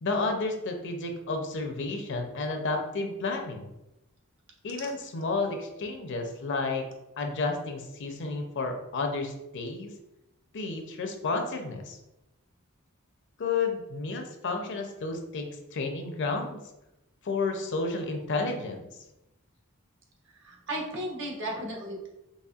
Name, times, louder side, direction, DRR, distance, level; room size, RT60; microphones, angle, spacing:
voice 1, 0.0-3.7 4.6-6.8 7.2-9.9 10.5-12.0 13.4-16.6 17.2-18.9, left 3 dB, 60° left, 4 dB, 0.5 m, -31 dB
voice 2, 20.3-22.1, right 1 dB, 60° right, -1 dB, 0.9 m, -35 dB
4.1 x 3.0 x 2.4 m, 0.93 s
head